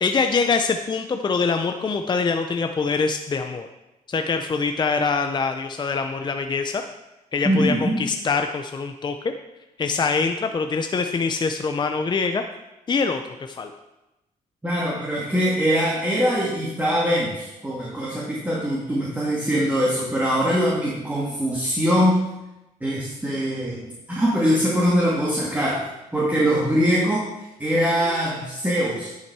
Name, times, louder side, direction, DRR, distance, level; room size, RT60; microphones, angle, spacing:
voice 1, 0.0-3.7 4.1-6.8 7.3-9.3 9.8-12.4 12.9-13.7, left 4 dB, 30° left, 6 dB, 0.6 m, -24 dB
voice 2, 7.4-8.0 14.6-22.2 22.8-25.9 26.1-27.3 27.6-29.1, equal, 10° right, -5 dB, 2.0 m, -22 dB
10.5 x 5.8 x 4.7 m, 0.96 s
cardioid pair, 95°, 15 cm